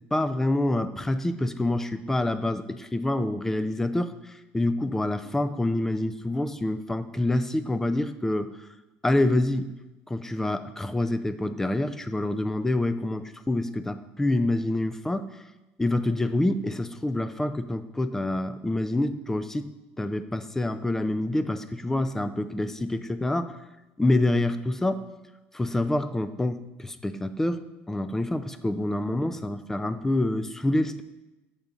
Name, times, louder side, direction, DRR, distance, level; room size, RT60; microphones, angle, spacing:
voice 1, 0.1-8.5 9.0-9.7 10.1-15.3 15.8-19.7 20.0-23.6 24.0-25.0 25.5-27.6 27.9-31.0, left 1 dB, 10° left, 11 dB, 0.3 m, -27 dB
6.8 x 3.6 x 5.1 m, 1.0 s
cardioid pair, 125°, 5 cm